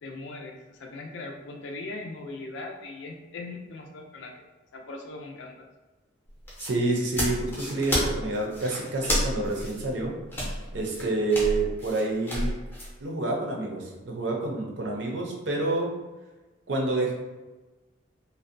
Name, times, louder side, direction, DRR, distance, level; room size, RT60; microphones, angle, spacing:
voice 1, 0.0-4.3 4.7-5.6, left 2 dB, 70° left, 1 dB, 0.4 m, -39 dB
sound 1, 6.3-12.9, equal, 10° left, 0.5 m, -31 dB
voice 2, 6.6-10.1 10.7-12.5 13.0-15.9 16.7-17.1, right 2 dB, 65° right, -1 dB, 0.5 m, -28 dB
2.5 x 2.0 x 2.5 m, 1.2 s
head